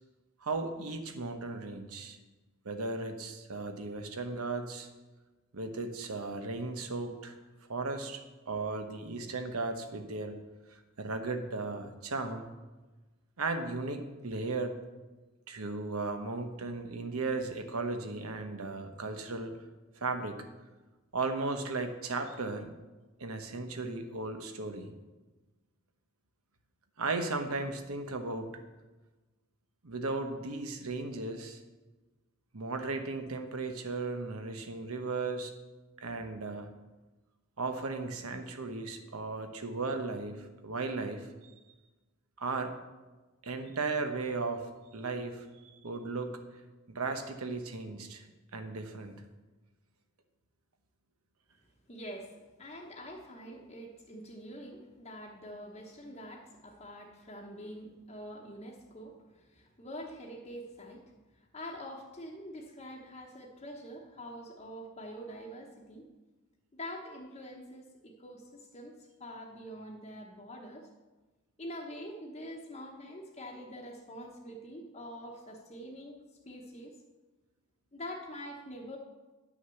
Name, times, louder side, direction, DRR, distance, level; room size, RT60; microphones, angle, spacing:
voice 1, 0.4-2.2 2.6-4.9 5.5-7.4 7.7-10.3 10.7-12.5 13.4-14.8 15.5-19.5 20.0-20.4 21.1-22.7 23.2-24.9 27.0-28.5 29.8-31.6 32.5-35.5 36.0-36.7 37.6-41.5 42.4-42.7 43.4-44.7 44.9-46.4 46.9-48.2 48.5-49.2, right 3 dB, 85° right, 7 dB, 1.1 m, -36 dB
voice 2, 51.9-61.0 61.4-66.0 66.7-68.9 69.2-70.9 71.6-76.2 76.4-76.9 77.9-79.0, equal, 30° left, -1 dB, 1.0 m, -45 dB
9.7 x 6.1 x 7.0 m, 1.2 s
head